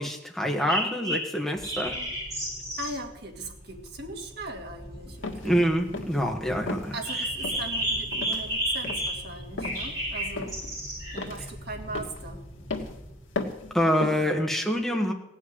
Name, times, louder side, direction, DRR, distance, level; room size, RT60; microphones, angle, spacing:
voice 1, 0.0-2.0 5.4-6.9 13.7-15.1, equal, ahead, 1 dB, 1.6 m, -26 dB
sound 1, 0.6-2.9 7.0-9.3 9.6-11.2, right 1 dB, 20° right, 7.3 m, -31 dB
sound 2, 1.5-13.9, equal, 30° left, 3.6 m, -45 dB
voice 2, 2.8-5.5 6.9-10.6 11.1-12.4 14.2-14.4, right 2 dB, 55° right, 2 dB, 2.2 m, -39 dB
sound 3, 5.2-5.5 5.9-6.3 6.7-6.9 7.4-7.7 8.1-8.4 8.8-9.1 9.6-9.8 10.4-10.7 11.2-11.5 11.9-12.2 12.7-13.0 13.4-13.7 14.0-14.3, left 3 dB, 90° left, 1.8 m, -34 dB
16.5 x 6.4 x 9.6 m, 0.85 s
head